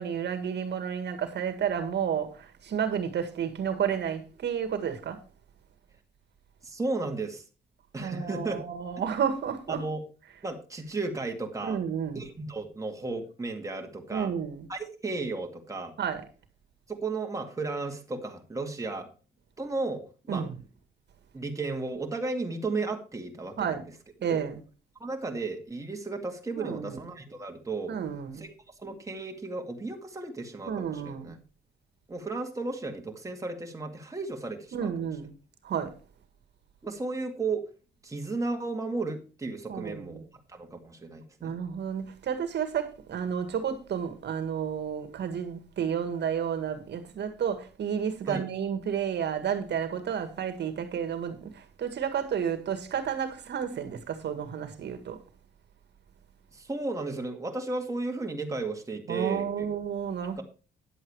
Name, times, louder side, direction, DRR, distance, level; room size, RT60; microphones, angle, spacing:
voice 1, 0.0-5.2 8.0-9.9 11.6-12.3 14.1-14.7 16.0-16.2 20.3-20.5 23.6-23.8 24.2-24.6 26.6-27.0 27.9-28.5 30.7-31.4 34.7-35.3 35.6-35.9 39.7-40.2 41.4-55.2 59.1-60.4, right 8 dB, 60° right, 1.8 m, -31 dB
voice 2, 6.6-7.4 7.9-8.6 9.7-10.0 10.4-11.8 12.1-14.3 14.7-15.9 16.9-19.1 19.6-20.4 21.3-23.9 24.3-24.5 25.0-28.0 28.4-28.5 28.8-31.4 32.1-35.1 36.8-37.6 38.0-40.2 40.5-41.5 48.3-48.4 56.5-59.7 60.4-60.5, right 3 dB, 15° right, 2.2 m, -34 dB
10.5 x 7.8 x 4.7 m
cardioid pair, 90°, 20 cm